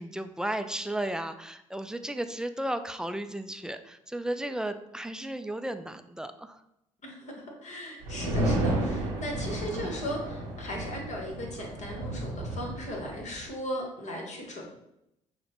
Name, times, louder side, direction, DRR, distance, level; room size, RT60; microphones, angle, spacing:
voice 1, 0.0-6.6, right 1 dB, 5° right, 9 dB, 0.3 m, -34 dB
voice 2, 7.0-7.3 7.6-14.7, equal, 50° left, 0 dB, 1.3 m, -37 dB
sound 1, 8.0-13.5, right 1 dB, 90° right, 0.7 m, -32 dB
6.1 x 2.2 x 2.9 m, 0.83 s
hypercardioid pair, 55°, 16 cm